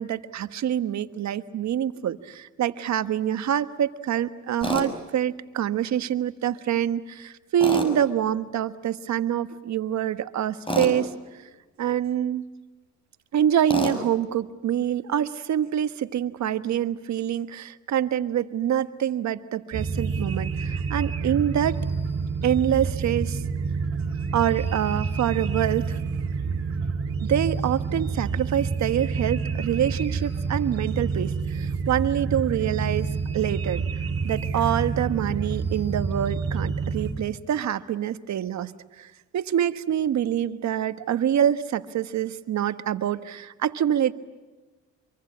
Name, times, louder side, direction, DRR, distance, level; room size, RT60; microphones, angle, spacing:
voice 1, 0.0-11.1 11.8-12.4 13.3-21.8 22.4-23.4 24.3-26.0 27.2-33.1 33.3-33.8 34.2-38.7 39.0-39.1 39.3-44.1, right 10 dB, 65° right, 11 dB, 1.4 m, -26 dB
Tools, 4.6-4.9 7.6-7.9 10.7-10.9 13.7-14.0, equal, 15° left, 6.3 m, -27 dB
sound 1, 19.7-37.1, right 4 dB, 50° right, 2.9 m, -28 dB
26.0 x 24.0 x 8.7 m, 1.2 s
cardioid pair, 90°, 30 cm